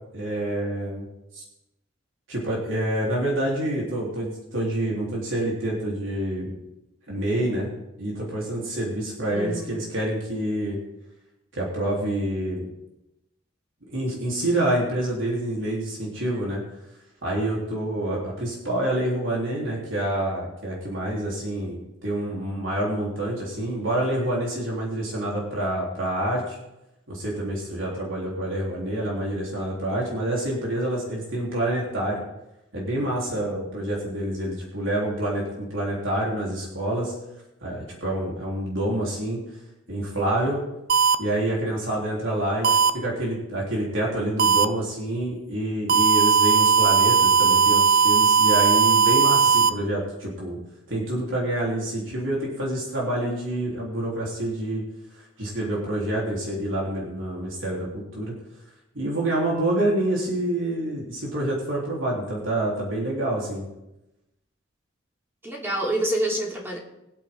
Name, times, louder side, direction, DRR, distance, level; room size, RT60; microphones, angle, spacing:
voice 1, 0.1-1.1 1.3-1.4 2.3-6.5 7.1-7.7 8.0-10.8 11.5-12.6 13.9-16.6 17.2-26.6 27.1-32.2 32.7-37.1 37.6-39.4 39.9-40.6 41.2-42.7 42.9-50.6 50.9-54.8 55.4-58.3 58.9-63.6, right 1 dB, 85° right, -4 dB, 3.9 m, -27 dB
voice 2, 9.3-9.8 60.2-60.6 65.4-66.8, right 1 dB, 10° right, -3 dB, 3.0 m, -28 dB
sound 1, 40.9-41.1 42.6-42.9 44.4-44.6 45.9-49.7, right 5 dB, 50° right, 0.5 m, -18 dB
22.0 x 8.5 x 3.9 m, 0.92 s
head